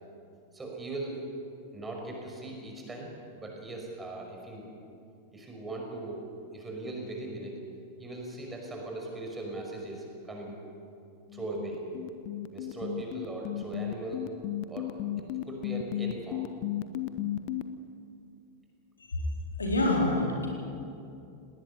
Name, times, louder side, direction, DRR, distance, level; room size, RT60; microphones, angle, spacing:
voice 1, 0.5-1.2 1.7-4.7 5.3-6.3 6.5-7.6 8.0-10.6 11.3-11.8 12.5-14.3 14.7-14.9 15.4-16.5, right 2 dB, 15° right, 0 dB, 5.7 m, -39 dB
sound 1, 11.3-17.6, left 13 dB, 45° left, 1.0 m, -33 dB
voice 2, 19.6-20.5, left 1 dB, 75° left, 0 dB, 4.1 m, -26 dB
19.5 x 19.0 x 9.8 m, 2.6 s
figure-of-eight pair, 90°, 0 cm